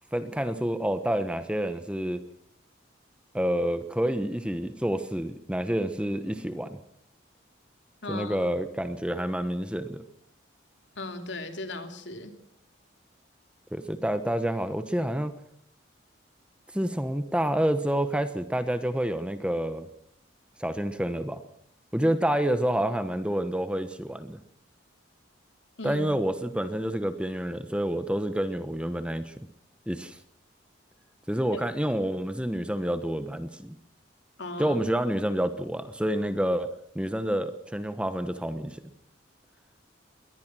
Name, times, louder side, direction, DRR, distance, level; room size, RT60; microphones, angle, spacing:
voice 1, 0.1-2.2 3.3-6.8 8.1-10.0 13.7-15.3 16.7-19.9 20.6-21.4 21.9-24.4 25.8-29.3 29.9-30.2 31.3-33.7 34.6-38.8, right 1 dB, 5° right, 10 dB, 1.1 m, -28 dB
voice 2, 8.0-8.5 10.9-12.3 25.8-26.0 34.4-34.8, left 2 dB, 65° left, 7 dB, 3.1 m, -37 dB
22.0 x 19.0 x 6.2 m, 0.67 s
head